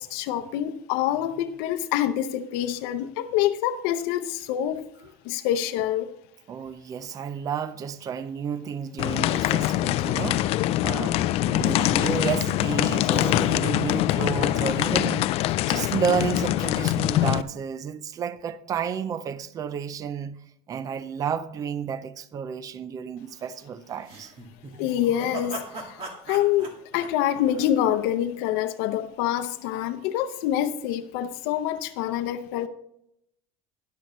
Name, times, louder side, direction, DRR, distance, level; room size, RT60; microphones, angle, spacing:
voice 1, 0.0-6.1 24.8-32.7, left 11 dB, 80° left, 0.7 m, -26 dB
voice 2, 6.5-20.4 20.7-24.3, right 7 dB, 25° right, 0.4 m, -31 dB
sound 1, 9.0-17.4, left 14 dB, 45° left, 0.4 m, -24 dB
sound 2, 24.0-28.2, right 2 dB, 40° right, 1.9 m, -39 dB
13.0 x 10.5 x 3.1 m
cardioid pair, 175°, 14 cm